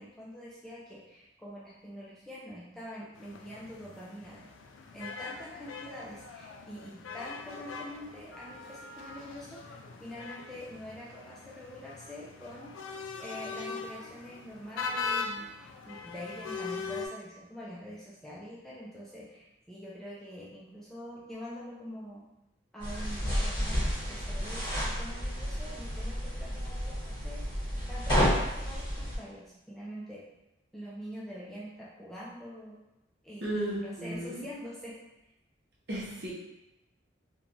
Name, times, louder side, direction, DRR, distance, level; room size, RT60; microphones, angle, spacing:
voice 1, 0.0-4.4 4.9-12.7 13.2-22.2 22.7-27.4 27.9-30.3 30.7-32.8 33.2-35.0, equal, ahead, -7 dB, 0.3 m, -45 dB
sound 1, 3.1-17.1, left 4 dB, 85° left, 0.3 m, -41 dB
sound 2, 22.8-29.2, equal, 25° left, 1.2 m, -31 dB
voice 2, 33.4-34.4 35.9-36.3, right 1 dB, 55° right, -4 dB, 0.7 m, -34 dB
3.0 x 2.2 x 2.5 m, 0.94 s
head